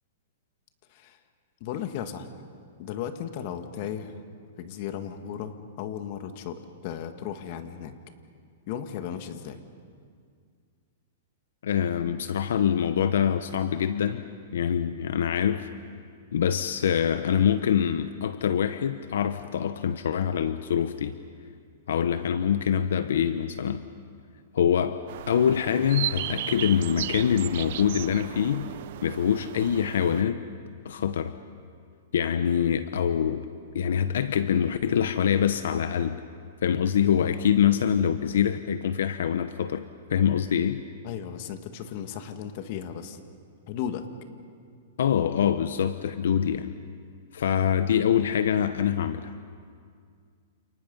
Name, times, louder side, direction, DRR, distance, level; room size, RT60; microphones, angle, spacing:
voice 1, 1.6-2.3 2.8-4.2 4.6-8.0 8.7-9.6 41.0-43.2 43.7-44.1, left 9 dB, 45° left, 8 dB, 1.8 m, -35 dB
voice 2, 11.6-14.3 14.5-15.7 16.3-21.2 21.9-23.9 24.5-28.7 29.0-30.4 30.8-31.4 32.1-33.5 33.7-36.2 36.6-39.8 40.1-40.8 45.0-46.7 47.3-49.3, left 8 dB, 80° left, 11 dB, 0.9 m, -25 dB
sound 1, 25.1-30.2, right 13 dB, 55° right, 0.6 m, -35 dB
29.5 x 28.5 x 5.5 m, 2.2 s
hypercardioid pair, 150°, 0 cm